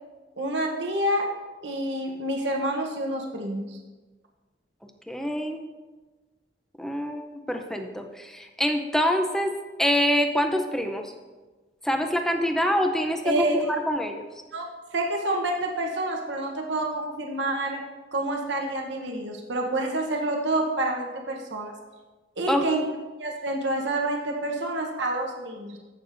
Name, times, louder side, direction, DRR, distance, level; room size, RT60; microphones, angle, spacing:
voice 1, 0.4-1.3 1.6-3.8 13.2-13.7 14.5-14.7 14.9-17.8 18.1-21.7 22.4-22.8 23.2-25.8, right 1 dB, 80° right, 1 dB, 1.0 m, -28 dB
voice 2, 5.1-5.6 6.8-9.5 9.8-11.1 11.8-14.2 22.5-22.7, equal, 5° left, 5 dB, 0.6 m, -25 dB
14.5 x 6.6 x 2.6 m, 1.3 s
head